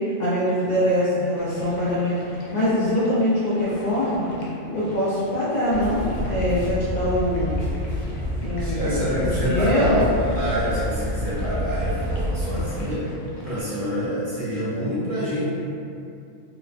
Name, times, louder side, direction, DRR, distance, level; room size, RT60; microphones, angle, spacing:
voice 1, 0.2-2.2 2.5-4.3 4.7-7.6 8.4-10.0, left 1 dB, 70° left, -10 dB, 0.4 m, -23 dB
sound 1, 0.7-1.3 1.5-2.1 2.5-3.4 3.6-4.1 4.4-6.3 6.6-9.2 9.6-13.0 13.3-13.8, left 2 dB, 50° left, 0.9 m, -45 dB
sound 2, 1.4-13.6, left 1 dB, 85° left, 1.0 m, -43 dB
sound 3, 5.7-12.7, left 1 dB, 70° right, 1.0 m, -28 dB
voice 2, 8.6-13.0 13.4-15.4, equal, 50° right, -11 dB, 0.6 m, -26 dB
3.0 x 2.1 x 2.4 m, 2.6 s
omnidirectional pair, 1.4 m